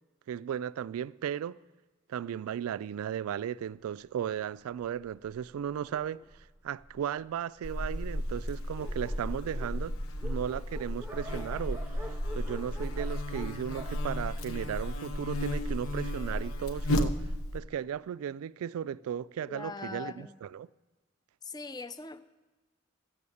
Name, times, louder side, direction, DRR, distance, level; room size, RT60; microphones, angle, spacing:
voice 1, 0.3-1.6 2.1-9.9 10.2-17.2 17.5-20.7, right 9 dB, 90° right, 0.3 m, -36 dB
Dog, 4.6-7.3 8.0-8.1 8.4-8.5 8.7-15.1, equal, 10° right, 1.0 m, -49 dB
Buzz, 7.6-17.6, left 1 dB, 85° left, 0.9 m, -34 dB
voice 2, 19.5-20.4 21.4-22.2, left 4 dB, 20° left, 0.5 m, -41 dB
13.5 x 7.1 x 8.4 m
head